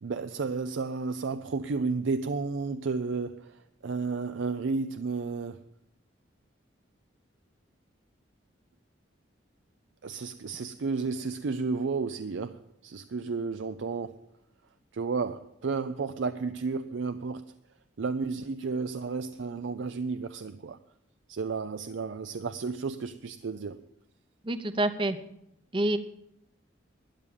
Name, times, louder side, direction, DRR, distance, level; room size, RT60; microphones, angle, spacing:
voice 1, 0.0-5.7 10.0-14.3 14.9-17.5 18.0-20.8 21.3-23.8, right 4 dB, 80° right, 0.5 m, -32 dB
voice 2, 24.4-25.2 25.7-26.0, right 1 dB, 25° right, 0.7 m, -27 dB
12.5 x 9.8 x 7.2 m
head